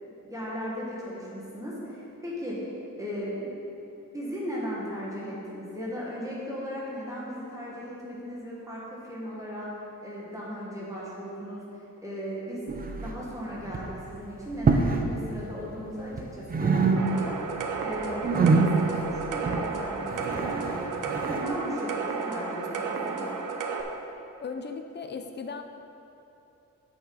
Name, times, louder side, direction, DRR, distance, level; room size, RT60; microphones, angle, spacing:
voice 1, 0.2-2.6 3.0-3.5 4.1-11.6 12.0-12.6 13.0-20.9 21.2-23.3, equal, 10° right, -6 dB, 1.5 m, -36 dB
sound 1, 12.7-13.4 13.6-14.0 14.5-15.1 15.4-16.2 16.5-17.5 17.8-21.5, right 4 dB, 30° right, 0.4 m, -26 dB
sound 2, 17.0-23.8, right 5 dB, 70° right, 0.8 m, -32 dB
voice 2, 24.4-25.6, left 5 dB, 35° left, 6 dB, 0.4 m, -37 dB
9.0 x 7.2 x 4.0 m, 2.9 s
wide cardioid pair, 165°, 33 cm